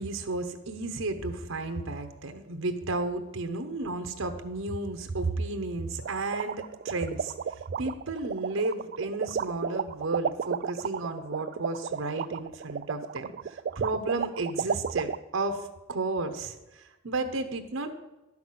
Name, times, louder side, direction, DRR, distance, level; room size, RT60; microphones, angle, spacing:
voice 1, 0.0-7.3 7.8-17.9, right 2 dB, 80° right, 6 dB, 0.9 m, -33 dB
sound 1, 6.0-15.2, right 7 dB, 50° right, 0.3 m, -32 dB
11.5 x 6.0 x 7.6 m, 1.0 s
head